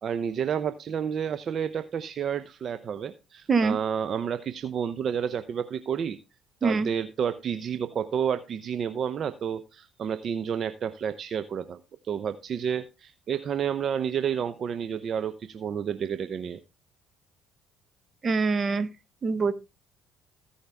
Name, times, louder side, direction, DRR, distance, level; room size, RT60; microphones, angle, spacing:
voice 1, 0.0-6.2 6.6-16.6, right 8 dB, 50° right, 0.7 m, -30 dB
voice 2, 18.2-18.9 19.2-19.5, right 4 dB, 35° right, 1.2 m, -24 dB
17.0 x 5.7 x 3.5 m
hypercardioid pair, 60°, 0 cm